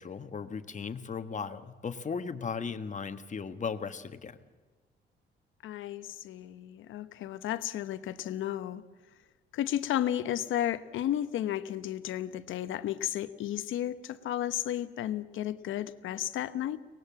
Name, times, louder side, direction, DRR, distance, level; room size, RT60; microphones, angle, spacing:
voice 1, 0.0-4.4, left 5 dB, 40° left, 9 dB, 1.4 m, -37 dB
voice 2, 5.6-8.9 9.5-16.8, left 12 dB, 80° left, 12 dB, 1.0 m, -33 dB
24.0 x 19.0 x 7.5 m, 1.4 s
cardioid pair, 90°, 20 cm